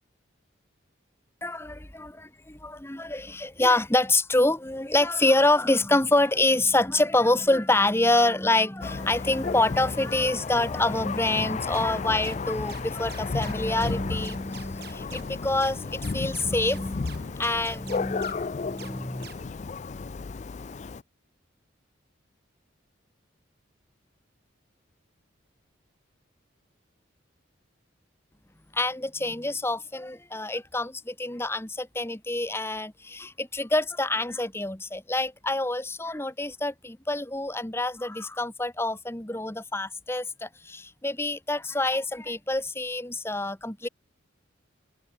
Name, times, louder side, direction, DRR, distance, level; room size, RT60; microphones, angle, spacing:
voice 1, 1.4-2.0 2.6-19.3 28.7-43.9, left 2 dB, 10° left, 1.3 m, -26 dB
Thunder, 8.8-21.0, left 4 dB, 35° left, 0.4 m, -33 dB
sound 1, 11.7-19.6, right 6 dB, 50° right, 5.8 m, -47 dB
head